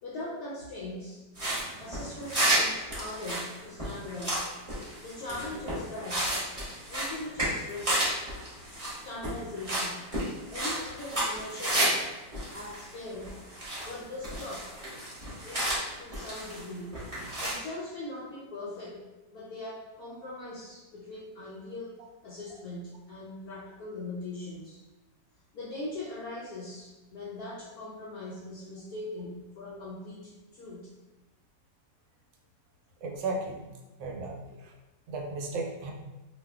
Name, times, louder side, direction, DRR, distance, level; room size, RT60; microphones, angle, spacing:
voice 1, 0.0-1.2 1.8-4.5 5.0-6.3 6.9-8.2 9.0-10.1 10.5-12.0 12.5-13.3 13.8-14.7 15.4-16.9 17.4-19.0 19.3-21.9 22.2-24.8 25.5-30.9, left 2 dB, 70° left, -6 dB, 1.0 m, -40 dB
sound 1, 1.3-12.0 12.3-14.0 14.2-16.6 16.9-17.5, right 1 dB, 25° right, 0.9 m, -32 dB
voice 2, 33.0-33.6 34.0-34.4 34.6-34.7 35.1-35.9, right 3 dB, 80° right, 1 dB, 1.2 m, -34 dB
2.7 x 2.3 x 3.3 m, 1.1 s
omnidirectional pair, 1.9 m